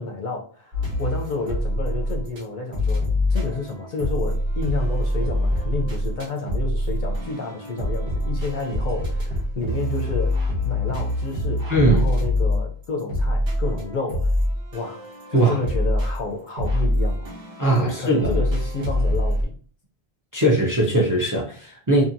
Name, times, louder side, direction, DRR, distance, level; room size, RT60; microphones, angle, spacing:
voice 1, 0.0-3.0 3.3-14.4 14.7-17.3 17.8-19.6, left 3 dB, 60° left, 0.6 m, -30 dB
sound 1, 0.7-2.4 2.7-19.4, left 1 dB, 75° right, 1.1 m, -25 dB
voice 2, 11.7-12.0 15.3-15.6 17.6-18.3 20.3-22.0, right 1 dB, 25° right, 0.4 m, -20 dB
2.7 x 2.6 x 2.5 m
omnidirectional pair, 1.1 m